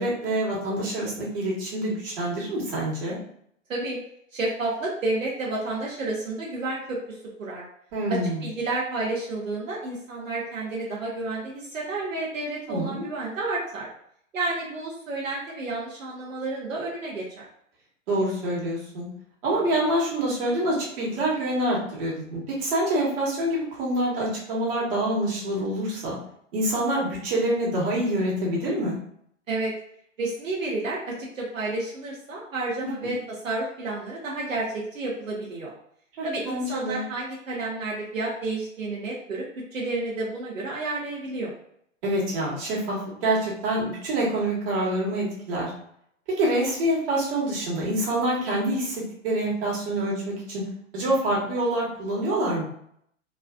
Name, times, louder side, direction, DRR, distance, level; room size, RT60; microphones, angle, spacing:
voice 1, 0.0-3.2 7.9-8.4 12.7-13.1 18.1-19.1 19.4-26.2 26.5-29.0 32.8-33.1 36.2-37.0 42.0-45.7 46.4-50.6 50.9-52.6, right 1 dB, 45° right, -4 dB, 1.4 m, -26 dB
voice 2, 4.3-7.6 8.1-13.9 14.3-17.4 29.5-29.7 30.2-33.2 33.4-35.7 36.2-39.4 39.7-41.5, right 2 dB, 80° right, -4 dB, 0.9 m, -30 dB
3.1 x 2.4 x 2.3 m, 0.69 s
hypercardioid pair, 120°, 39 cm